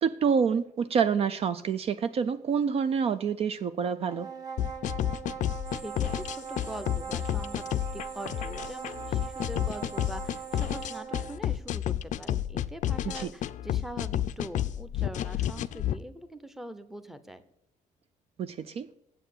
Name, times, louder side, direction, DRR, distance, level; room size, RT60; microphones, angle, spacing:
voice 1, 0.0-4.3 13.1-13.3 18.4-18.9, right 6 dB, 45° right, 12 dB, 0.4 m, -27 dB
sound 1, 4.0-11.4, right 7 dB, 30° right, 1.8 m, -40 dB
sound 2, 4.6-16.0, left 12 dB, 65° left, 0.4 m, -30 dB
sound 3, 5.6-11.0, right 4 dB, 75° right, 1.7 m, -51 dB
voice 2, 5.7-17.4, right 1 dB, ahead, 10 dB, 0.7 m, -43 dB
8.9 x 8.0 x 8.3 m, 0.80 s
cardioid pair, 150°, 13 cm